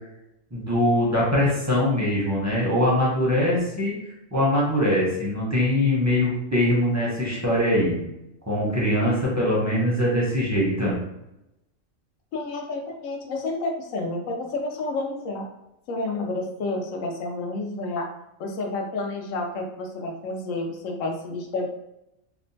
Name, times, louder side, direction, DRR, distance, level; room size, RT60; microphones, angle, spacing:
voice 1, 0.5-3.9 4.3-8.0 8.5-11.0, left 1 dB, 20° right, -6 dB, 0.5 m, -22 dB
voice 2, 12.3-15.5 15.9-18.1 18.4-21.7, left 2 dB, 85° left, 2 dB, 1.0 m, -30 dB
2.8 x 2.1 x 2.6 m, 0.88 s
omnidirectional pair, 1.3 m